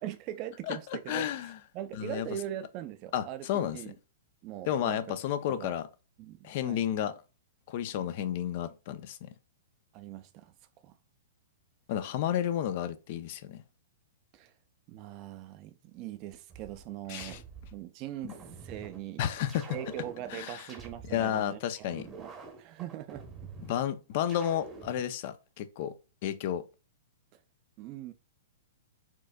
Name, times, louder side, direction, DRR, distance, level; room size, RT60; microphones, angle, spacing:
voice 1, 0.0-1.3 1.7-3.5 3.7-4.0 4.4-5.0 5.5-5.7 6.2-6.8 9.9-10.5 10.8-11.0 14.3-14.5 14.9-17.4 17.7-19.3 19.7-22.3 22.6-23.5 27.8-28.1, right 12 dB, 40° right, 0.4 m, -41 dB
voice 2, 1.1-1.6 2.0-2.3 3.1-3.8 4.7-5.9 6.4-7.1 7.7-9.3 11.9-13.6 17.1-17.4 18.2-18.3 19.2-19.6 20.3-20.7 21.1-22.0 23.7-25.9 26.2-26.6, left 10 dB, 50° left, 0.4 m, -32 dB
sound 1, 16.5-17.8 18.3-19.0 19.5-21.4 21.9-23.8 24.3-25.0, right 4 dB, 20° right, 0.8 m, -47 dB
4.4 x 2.4 x 2.2 m
hypercardioid pair, 125°, 0 cm